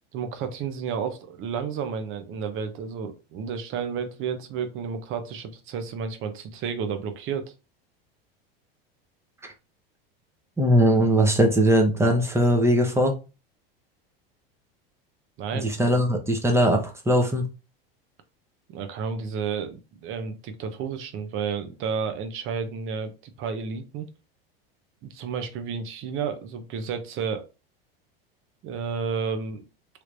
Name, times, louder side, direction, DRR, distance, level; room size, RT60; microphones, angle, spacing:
voice 1, 0.1-7.5 15.4-15.7 18.7-24.1 25.0-27.4 28.6-29.6, right 6 dB, 45° right, 0.8 m, -31 dB
voice 2, 10.6-13.2 15.6-17.5, equal, 10° right, 0.9 m, -20 dB
3.4 x 2.9 x 2.5 m
hypercardioid pair, 105°, 30 cm